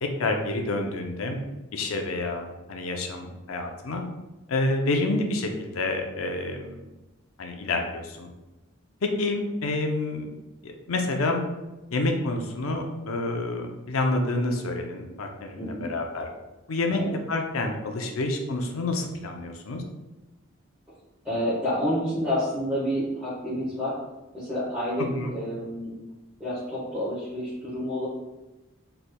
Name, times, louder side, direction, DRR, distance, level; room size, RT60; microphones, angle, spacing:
voice 1, 0.0-1.4 1.7-4.0 4.5-6.8 7.4-8.3 9.0-10.3 10.6-11.4 11.9-16.3 16.7-17.0 17.3-19.8 25.1-25.3, left 2 dB, 80° left, 3 dB, 0.6 m, -28 dB
voice 2, 15.5-15.9 16.9-17.1 21.2-23.9 24.3-25.9 26.4-28.1, equal, 5° right, -13 dB, 1.3 m, -29 dB
4.2 x 3.3 x 2.2 m, 1.1 s
head